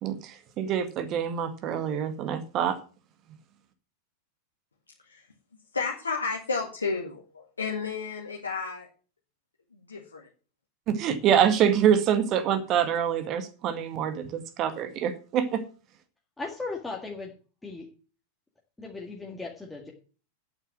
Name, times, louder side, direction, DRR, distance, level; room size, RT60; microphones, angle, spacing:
voice 1, 0.0-2.8 10.9-15.6, right 8 dB, 35° right, 9 dB, 1.8 m, -25 dB
voice 2, 5.7-8.9 9.7-10.3, left 4 dB, 75° left, -1 dB, 2.0 m, -32 dB
voice 3, 16.4-17.3 17.6-17.9 18.8-19.9, left 3 dB, 10° left, -1 dB, 2.0 m, -37 dB
9.0 x 8.0 x 7.6 m, 0.38 s
figure-of-eight pair, 90°, 0 cm